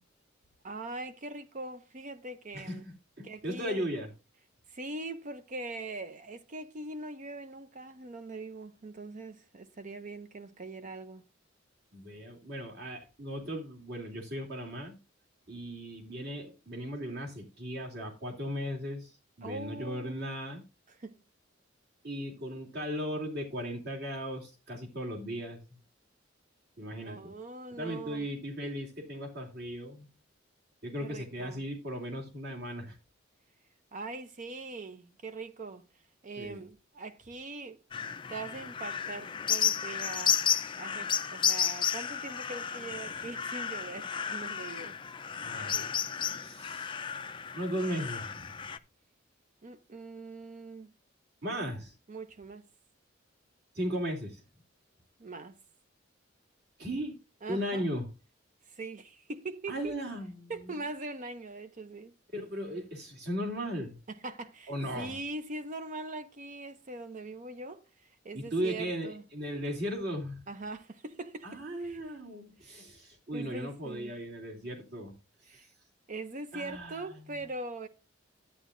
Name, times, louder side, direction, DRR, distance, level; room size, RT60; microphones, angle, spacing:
voice 1, 0.6-2.8 3.2-3.8 4.7-11.2 19.4-20.3 20.9-21.2 27.0-28.3 31.0-31.7 33.9-35.8 36.2-37.8 38.3-40.4 40.7-45.0 49.6-50.9 52.1-52.7 55.2-55.6 57.4-57.8 58.7-60.0 60.5-62.1 64.1-67.8 68.2-69.2 70.5-72.0 72.6-72.8 73.3-74.1 75.5-75.7 76.1-77.9, right 2 dB, 40° right, 0.6 m, -42 dB
voice 2, 2.5-4.1 11.9-15.0 15.5-19.1 19.4-20.6 22.0-25.6 26.8-27.3 27.7-30.1 30.8-33.0 36.4-36.6 45.4-46.0 46.4-47.0 47.5-48.5 51.4-51.9 53.7-54.4 56.8-57.2 57.5-58.1 59.7-60.8 62.3-64.0 64.7-65.2 68.3-70.4 71.4-75.2 76.5-77.4, equal, 55° right, 2.8 m, -37 dB
sound 1, 37.9-48.8, left 8 dB, 25° left, 0.4 m, -33 dB
11.5 x 9.1 x 2.5 m
head